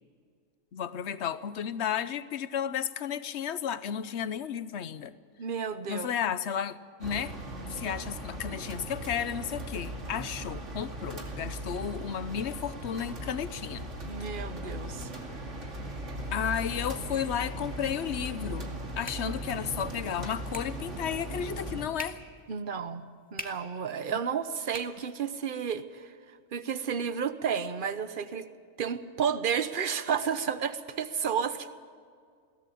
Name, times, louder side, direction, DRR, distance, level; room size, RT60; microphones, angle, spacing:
voice 1, 0.7-5.1 5.9-7.3 7.7-13.9 16.3-22.2 24.1-24.2, left 8 dB, 60° left, 15 dB, 1.0 m, -33 dB
voice 2, 5.4-6.1 14.0-15.1 19.2-19.3 22.5-23.0 23.3-26.1 26.5-28.5 28.8-31.7, right 7 dB, 45° right, 12 dB, 1.1 m, -32 dB
sound 1, 7.0-21.9, right 1 dB, 65° right, 2.8 m, -38 dB
sound 2, 18.5-25.5, left 1 dB, 5° left, 1.6 m, -48 dB
21.5 x 17.5 x 8.6 m, 2.2 s
omnidirectional pair, 1.4 m